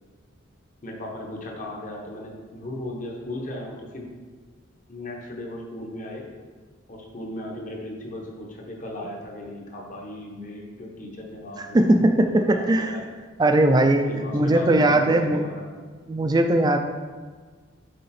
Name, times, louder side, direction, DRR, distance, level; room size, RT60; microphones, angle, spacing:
voice 1, 0.8-4.1 4.9-6.3 6.9-13.1 14.1-15.8, left 1 dB, 40° left, 0 dB, 1.0 m, -37 dB
voice 2, 11.7-12.9 13.4-15.4 16.1-16.8, right 1 dB, 20° right, 6 dB, 0.3 m, -19 dB
6.5 x 4.1 x 4.2 m, 1.5 s
head